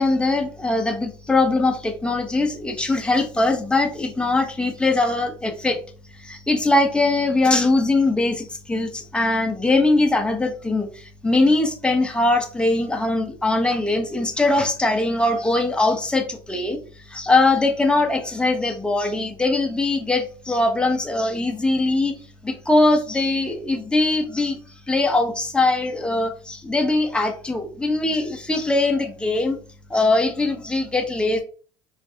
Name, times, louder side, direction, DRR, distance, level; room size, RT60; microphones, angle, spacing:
voice 1, 0.0-5.8 6.2-16.8 17.1-22.2 22.4-24.6 24.9-29.6 29.9-31.4, left 2 dB, 5° left, 3 dB, 0.9 m, -21 dB
4.4 x 2.6 x 2.8 m, 0.40 s
hypercardioid pair, 70°, 14 cm